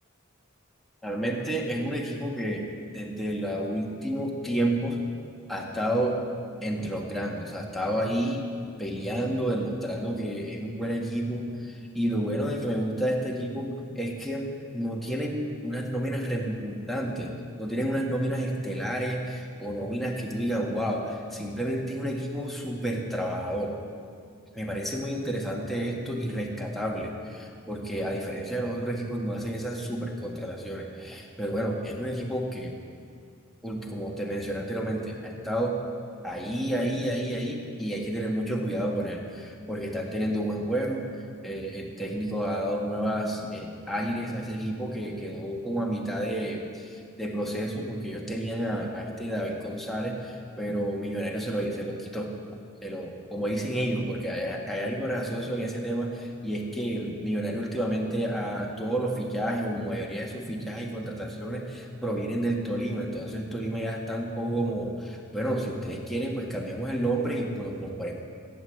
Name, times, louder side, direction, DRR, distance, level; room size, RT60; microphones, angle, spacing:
voice 1, 1.0-2.7 2.9-5.0 5.5-6.2 6.6-8.4 8.8-23.8 24.5-32.8 33.6-35.8 36.2-41.1 41.4-52.3 52.8-68.1, right 1 dB, ahead, -2 dB, 1.7 m, -30 dB
15.5 x 9.6 x 7.8 m, 2.2 s
head